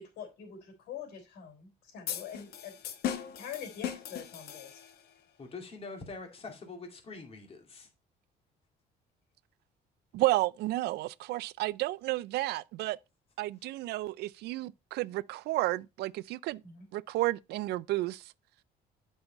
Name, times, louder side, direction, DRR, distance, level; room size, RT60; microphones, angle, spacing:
voice 1, 0.0-2.7 3.3-4.8 16.6-16.8, left 8 dB, 90° left, 3.6 m, -44 dB
sound 1, 2.1-5.1, left 10 dB, 70° left, 1.1 m, -38 dB
voice 2, 5.4-7.9, left 3 dB, 35° left, 2.4 m, -44 dB
voice 3, 10.1-13.0 13.4-16.6 16.9-18.3, right 18 dB, 75° right, 0.4 m, -32 dB
8.0 x 5.5 x 4.0 m
cardioid pair, 110°, 17 cm